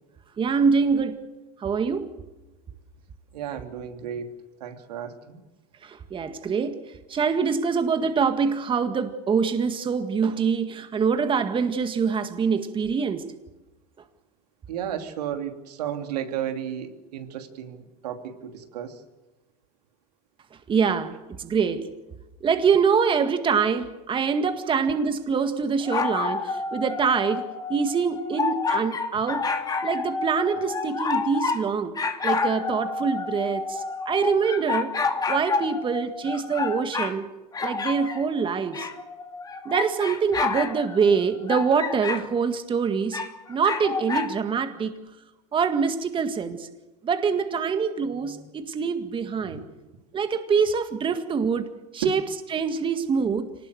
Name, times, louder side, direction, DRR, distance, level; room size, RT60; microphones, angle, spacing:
voice 1, 0.4-1.2 1.6-2.1 5.8-6.8 7.1-13.3 20.7-21.9 22.4-29.5 29.8-35.0 35.3-37.3 37.6-38.9 39.7-45.0 45.5-46.7 47.0-49.6 50.1-52.2 52.5-53.6, right 6 dB, 25° right, 1.9 m, -25 dB
voice 2, 3.3-4.3 4.6-5.4 14.7-19.0 24.7-24.8 48.2-48.4 49.4-49.7 52.0-52.2, right 9 dB, 85° right, 3.0 m, -33 dB
sound 1, 25.8-31.6 32.0-37.2 37.5-42.3 43.1-44.3, left 4 dB, 20° left, 2.4 m, -29 dB
25.0 x 19.5 x 7.9 m
supercardioid pair, 115°, 20 cm